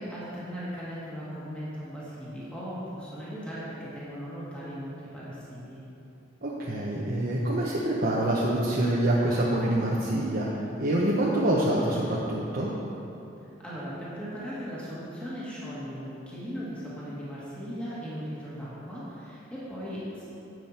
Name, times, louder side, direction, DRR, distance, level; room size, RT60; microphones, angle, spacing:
voice 1, 0.0-5.8 13.6-20.3, equal, 5° left, -9 dB, 2.1 m, -38 dB
voice 2, 6.4-10.5 10.8-12.7, right 1 dB, 50° right, -6 dB, 1.0 m, -26 dB
10.5 x 7.6 x 4.4 m, 2.8 s
head